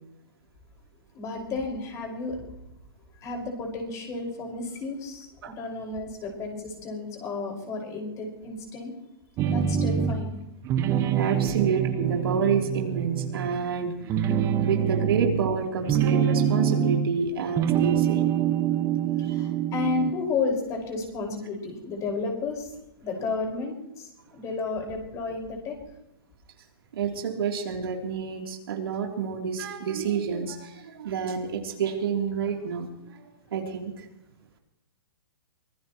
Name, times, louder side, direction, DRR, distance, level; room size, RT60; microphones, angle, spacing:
voice 1, 1.1-2.4 3.2-8.9 9.4-10.4 11.5-11.6 14.6-14.7 15.8-16.0 17.2-17.3 19.3-22.7 23.0-25.8, left 4 dB, 25° left, 2 dB, 5.4 m, -32 dB
sound 1, 9.4-10.3 10.6-13.7 14.0-17.2 17.5-20.2, right 9 dB, 25° right, 1.5 m, -25 dB
voice 2, 11.2-14.3 14.7-18.2 19.2-19.3 26.9-33.2 33.5-34.0, right 6 dB, 70° right, 1 dB, 3.4 m, -28 dB
24.5 x 19.0 x 3.1 m, 0.90 s
hypercardioid pair, 140°, 13 cm